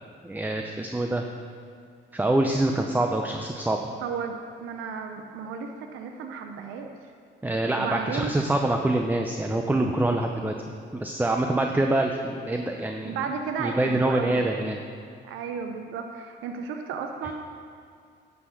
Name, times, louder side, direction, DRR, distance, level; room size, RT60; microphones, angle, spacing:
voice 1, 0.2-1.2 2.1-3.8 7.4-10.5 10.9-13.2 13.6-14.8, right 1 dB, 10° right, 3 dB, 0.6 m, -25 dB
voice 2, 4.0-6.9 7.8-8.5 13.0-14.4 15.2-17.3, right 6 dB, 90° right, 5 dB, 0.7 m, -33 dB
10.0 x 5.8 x 6.4 m, 2.2 s
cardioid pair, 90°, 20 cm